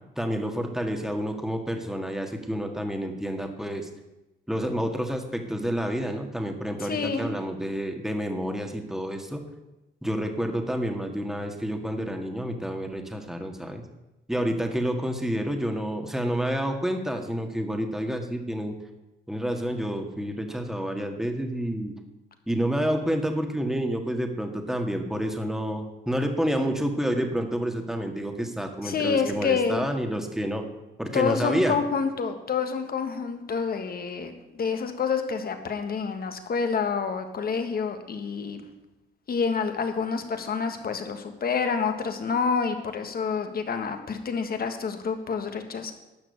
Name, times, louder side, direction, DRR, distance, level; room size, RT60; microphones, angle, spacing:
voice 1, 0.2-3.9 4.5-9.4 10.0-13.9 14.3-18.7 19.3-21.9 22.5-30.6 31.0-31.8, equal, ahead, 4 dB, 1.8 m, -29 dB
voice 2, 6.8-7.3 28.8-29.8 31.1-38.6 39.3-45.9, left 5 dB, 50° left, 7 dB, 1.7 m, -28 dB
12.0 x 6.1 x 8.3 m, 0.99 s
cardioid pair, 90°, 20 cm